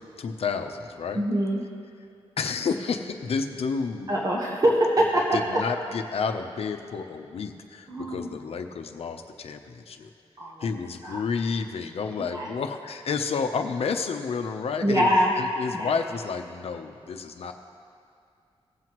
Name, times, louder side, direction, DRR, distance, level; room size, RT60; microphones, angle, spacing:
voice 1, 0.0-1.2 2.4-4.1 5.3-10.1 10.6-17.5, left 5 dB, 70° left, 6 dB, 0.7 m, -30 dB
voice 2, 1.1-1.6 4.1-5.6 7.9-8.4 10.4-10.7 11.0-11.2 12.3-12.5 14.8-15.3 15.7-15.9, equal, 35° right, -2 dB, 1.2 m, -24 dB
19.0 x 7.6 x 3.1 m, 2.4 s
cardioid pair, 90°, 10 cm